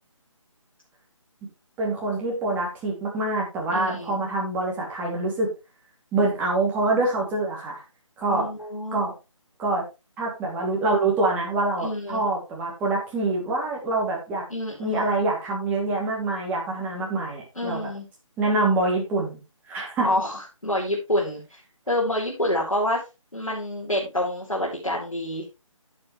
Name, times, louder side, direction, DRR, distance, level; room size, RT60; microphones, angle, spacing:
voice 1, 1.8-5.5 6.1-7.8 8.2-8.5 8.9-9.1 9.6-9.8 10.2-14.4 14.8-17.9 18.4-19.4 19.7-20.1, right 2 dB, 10° right, -2 dB, 2.7 m, -25 dB
voice 2, 3.7-4.2 8.3-9.0 11.8-12.2 14.5-15.2 17.5-18.1 20.0-21.6 21.9-23.0 23.3-25.4, left 1 dB, 85° left, -4 dB, 4.3 m, -27 dB
10.5 x 8.8 x 3.3 m, 0.27 s
figure-of-eight pair, 155°, 17 cm